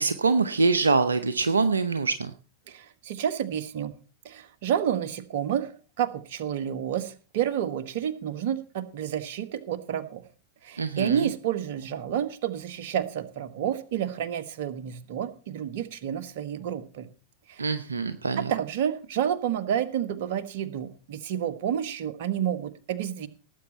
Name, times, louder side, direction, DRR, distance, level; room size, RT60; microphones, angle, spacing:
voice 1, 0.0-2.3 10.8-11.3 17.6-18.5, right 4 dB, 75° right, 11 dB, 0.9 m, -24 dB
voice 2, 2.7-3.9 4.2-10.2 10.6-17.1 17.5-17.7 18.4-23.3, right 9 dB, 55° right, 11 dB, 1.5 m, -30 dB
18.0 x 8.4 x 4.3 m, 0.35 s
figure-of-eight pair, 90°, 0 cm